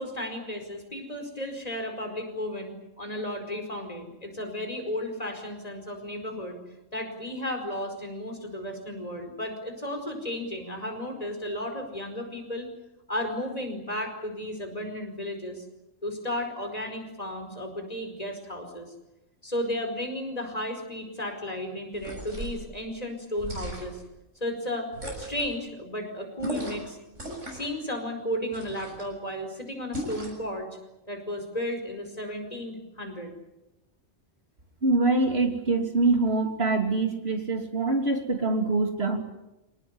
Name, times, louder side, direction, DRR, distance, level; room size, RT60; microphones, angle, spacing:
voice 1, 0.0-6.6 6.9-12.7 13.1-15.6 16.0-18.9 19.4-24.0 24.4-27.0 27.5-30.7 31.1-33.3, left 1 dB, 30° left, 4 dB, 5.0 m, -34 dB
sound 1, 21.9-22.6 23.4-24.1 24.9-25.5 26.4-26.9 27.1-27.7 28.5-29.1 29.9-30.5, right 1 dB, 70° right, 7.8 m, -37 dB
voice 2, 34.8-39.2, right 3 dB, 55° right, 3 dB, 3.3 m, -24 dB
26.5 x 19.0 x 9.8 m, 0.96 s
omnidirectional pair, 1.3 m